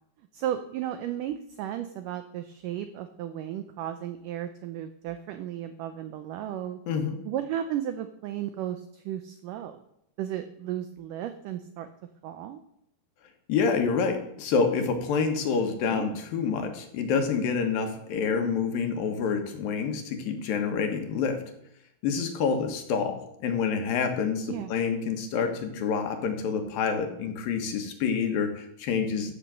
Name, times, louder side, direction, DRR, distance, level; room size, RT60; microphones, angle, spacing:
voice 1, 0.3-6.8 7.3-9.8 10.2-11.9 12.2-12.6 15.9-16.2 24.5-24.7, right 11 dB, 85° right, 10 dB, 1.8 m, -34 dB
voice 2, 6.9-7.2 13.5-21.4 22.0-29.3, left 5 dB, 70° left, 6 dB, 2.9 m, -27 dB
14.0 x 6.2 x 7.5 m, 0.77 s
omnidirectional pair, 4.6 m